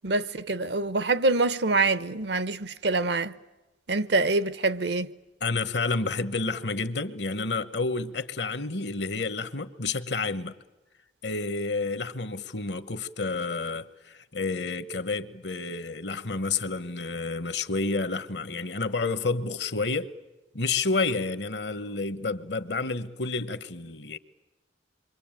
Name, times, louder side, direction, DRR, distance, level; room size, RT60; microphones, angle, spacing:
voice 1, 0.0-3.3 3.9-5.1, right 3 dB, 65° right, 0.9 m, -25 dB
voice 2, 5.4-10.5 11.2-20.1 20.5-24.2, left 3 dB, 65° left, 1.2 m, -30 dB
27.5 x 24.0 x 9.0 m
head